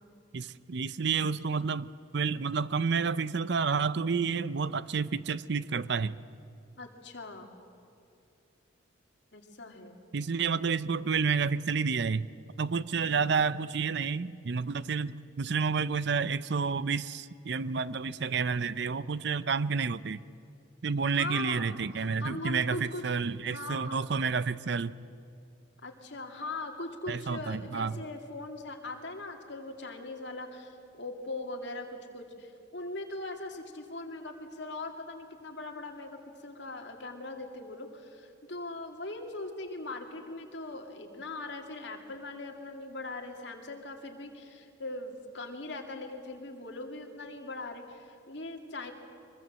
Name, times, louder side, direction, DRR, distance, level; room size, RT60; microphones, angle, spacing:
voice 1, 0.3-6.2 10.1-12.3 12.6-20.2 20.8-24.9 27.1-28.0, right 5 dB, 55° right, 17 dB, 0.5 m, -30 dB
voice 2, 6.8-7.5 9.3-10.0 12.9-13.3 21.1-21.7 22.2-23.0 23.5-24.1 25.8-48.9, left 2 dB, 60° left, 3 dB, 2.5 m, -40 dB
24.0 x 22.0 x 7.5 m, 2.5 s
head